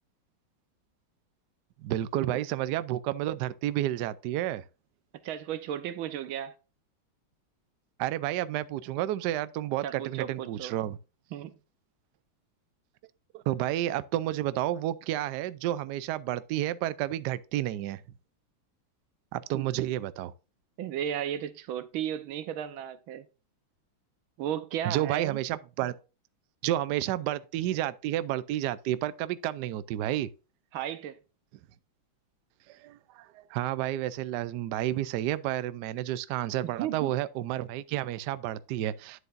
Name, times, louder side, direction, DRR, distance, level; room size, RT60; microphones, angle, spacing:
voice 1, 1.8-4.6 8.0-11.0 13.3-18.0 19.3-20.3 24.8-25.9 26.6-30.3 32.7-39.2, right 13 dB, 70° right, 1.0 m, -31 dB
voice 2, 5.2-6.5 9.8-10.7 11.3-11.5 19.5-19.9 20.8-23.3 24.4-25.4 30.7-31.2 36.6-37.1, right 10 dB, 90° right, 1.7 m, -34 dB
9.9 x 8.0 x 2.6 m
omnidirectional pair, 2.2 m